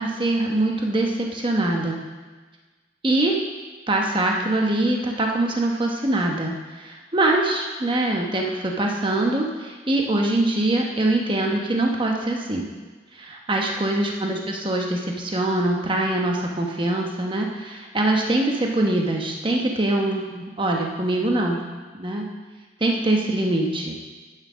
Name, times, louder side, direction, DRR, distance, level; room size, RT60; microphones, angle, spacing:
voice 1, 0.0-2.0 3.0-3.3 3.9-12.7 13.1-21.6 21.9-22.3 22.8-24.1, right 2 dB, 30° right, 0 dB, 1.1 m, -23 dB
9.3 x 7.6 x 6.2 m, 1.3 s
head